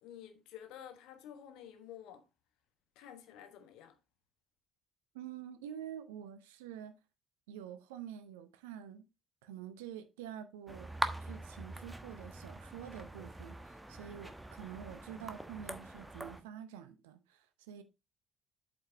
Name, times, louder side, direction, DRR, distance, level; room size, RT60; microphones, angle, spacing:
voice 1, 0.0-2.2 3.0-4.0, left 10 dB, 60° left, 1.2 m, -51 dB
voice 2, 5.1-7.0 7.5-9.0 9.4-10.9 11.2-17.8, right 10 dB, 70° right, 0.8 m, -47 dB
sound 1, 10.7-16.4, right 1 dB, 10° right, 1.2 m, -43 dB
8.2 x 5.2 x 4.4 m
figure-of-eight pair, 50°, 0 cm